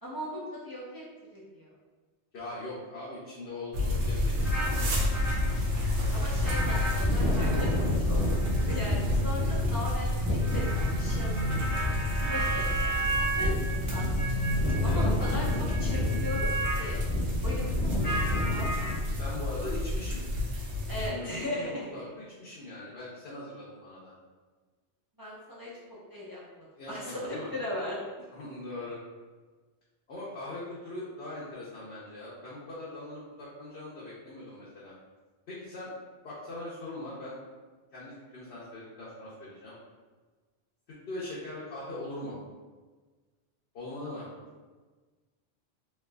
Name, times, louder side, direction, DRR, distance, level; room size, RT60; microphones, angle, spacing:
voice 1, 0.0-1.0 1.3-1.7 6.1-11.9 12.3-14.1 14.8-17.0 17.4-18.0 18.5-19.0 20.9-21.9 25.2-28.0, left 1 dB, 35° right, -7 dB, 0.3 m, -38 dB
voice 2, 2.3-5.1 14.6-15.1 19.2-20.2 20.9-24.1 26.8-27.5 28.3-29.0 30.1-34.9 35.5-35.9 36.2-37.4 37.9-39.7 41.1-42.3 43.7-44.3, left 2 dB, 70° left, -8 dB, 1.0 m, -41 dB
sound 1, 3.7-21.1, left 1 dB, 90° right, 1.0 m, -30 dB
sound 2, 4.4-18.9, equal, 10° left, 0.7 m, -30 dB
3.2 x 2.9 x 2.3 m, 1.4 s
omnidirectional pair, 1.2 m